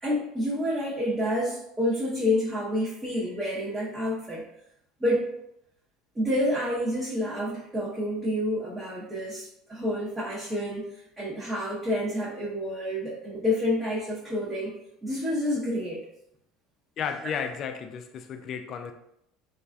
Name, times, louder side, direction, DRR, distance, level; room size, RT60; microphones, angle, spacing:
voice 1, 0.0-4.4 5.0-5.3 6.1-14.8 15.0-16.1, left 1 dB, 20° right, -7 dB, 0.8 m, -29 dB
voice 2, 17.0-18.9, left 7 dB, 50° left, 7 dB, 0.3 m, -33 dB
3.1 x 2.5 x 2.2 m, 0.79 s
supercardioid pair, 90°, 0 cm